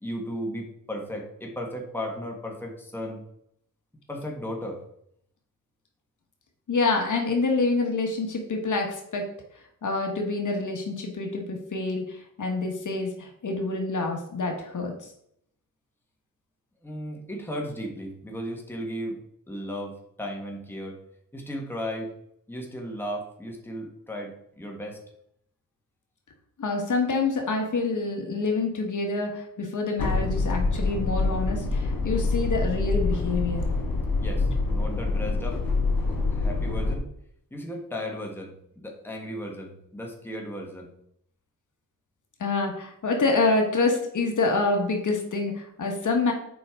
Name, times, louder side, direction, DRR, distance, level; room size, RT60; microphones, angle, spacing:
voice 1, 0.0-3.2 4.1-4.8 16.8-19.2 19.5-21.0 21.3-22.1 22.5-25.0 34.2-35.6 36.1-37.1 37.5-40.9, equal, 5° left, 0 dB, 1.5 m, -35 dB
voice 2, 6.7-9.3 9.5-15.1 26.6-33.6 42.4-46.3, left 3 dB, 60° left, 2 dB, 1.5 m, -27 dB
sound 1, 30.0-37.0, left 3 dB, 85° left, 2.2 m, -26 dB
7.6 x 5.2 x 3.7 m, 0.71 s
wide cardioid pair, 110°, 35 cm